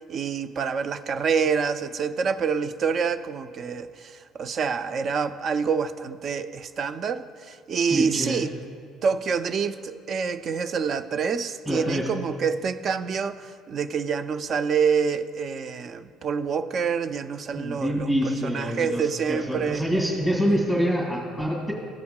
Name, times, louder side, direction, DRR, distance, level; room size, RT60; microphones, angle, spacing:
voice 1, 0.1-8.5 9.0-19.8, right 6 dB, 40° right, 12 dB, 0.3 m, -27 dB
voice 2, 7.9-8.4 11.7-12.1 17.5-21.7, equal, 10° right, -3 dB, 2.1 m, -26 dB
15.5 x 5.6 x 2.2 m, 2.1 s
cardioid pair, 125°, 0 cm